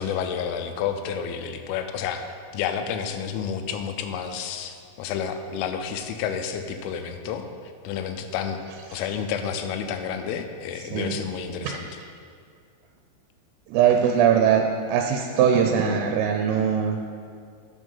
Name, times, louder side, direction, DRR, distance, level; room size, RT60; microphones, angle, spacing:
voice 1, 0.0-7.5 7.8-8.6 8.9-11.9, left 7 dB, 85° left, 7 dB, 3.1 m, -30 dB
voice 2, 13.7-14.6 14.9-17.0, right 8 dB, 90° right, 3 dB, 3.2 m, -21 dB
8.3 x 6.3 x 5.4 m, 2.2 s
omnidirectional pair, 5.7 m